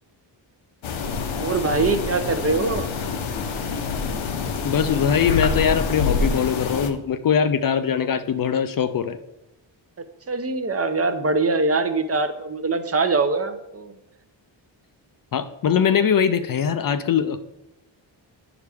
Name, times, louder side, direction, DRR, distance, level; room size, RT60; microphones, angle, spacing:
sound 1, 0.8-6.9, left 5 dB, 75° left, 0.9 m, -26 dB
voice 1, 1.4-2.9 10.3-13.9, right 3 dB, 30° right, 8 dB, 0.6 m, -23 dB
voice 2, 4.6-9.2 15.3-17.4, left 7 dB, 50° left, 11 dB, 0.4 m, -21 dB
10.5 x 4.9 x 3.4 m, 0.88 s
wide cardioid pair, 145°, 47 cm